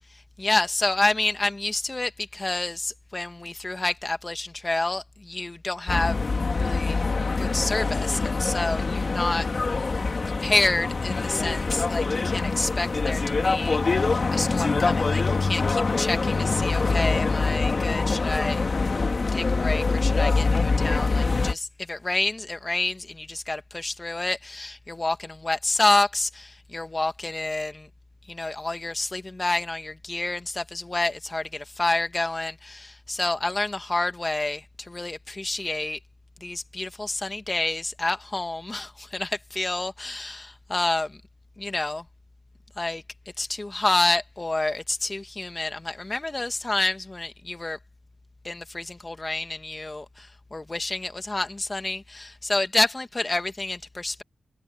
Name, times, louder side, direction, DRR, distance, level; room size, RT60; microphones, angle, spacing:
voice 1, 0.4-6.2 6.6-7.0 7.4-9.8 10.3-18.6 19.3-27.9 28.3-36.0 36.4-41.2 41.6-42.1 42.8-43.0 43.4-47.8 48.4-54.2, left 2 dB, 30° left, 1.8 m, -28 dB
sound 1, 5.9-21.5, left 4 dB, 55° left, 2.9 m, -24 dB
cardioid pair, 50°, 0 cm